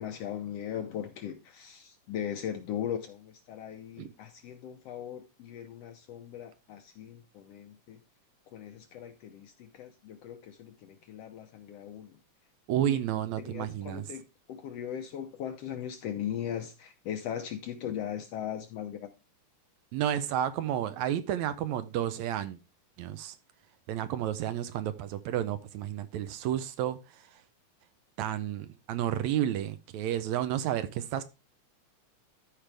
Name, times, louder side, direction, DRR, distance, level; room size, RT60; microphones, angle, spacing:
voice 1, 0.0-8.0 8.5-12.2 12.9-13.0 13.4-19.1, left 9 dB, 70° left, 1.6 m, -39 dB
voice 2, 12.7-14.1 19.9-22.6 23.0-23.4 23.9-27.4 28.2-31.2, right 11 dB, 75° right, 1.8 m, -31 dB
13.5 x 5.0 x 3.3 m
omnidirectional pair, 3.5 m